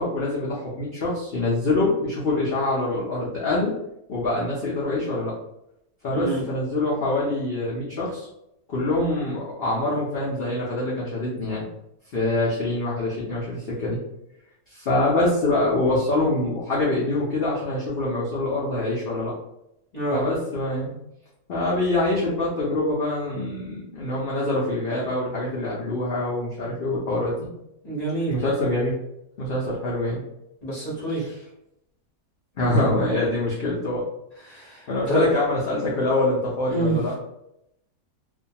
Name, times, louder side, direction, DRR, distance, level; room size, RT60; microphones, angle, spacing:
voice 1, 0.0-3.7 4.1-5.4 6.0-8.3 8.7-11.6 12.1-14.0 14.7-19.3 20.1-20.9 21.5-27.5 28.3-28.9 29.4-30.2 31.1-31.3 32.6-34.0 34.9-37.1, left 2 dB, 80° left, -6 dB, 0.5 m, -25 dB
voice 2, 27.8-28.3 30.6-31.4 34.4-35.3 36.7-37.0, right 2 dB, 35° left, -7 dB, 0.7 m, -26 dB
2.5 x 2.2 x 2.7 m, 0.82 s
omnidirectional pair, 1.7 m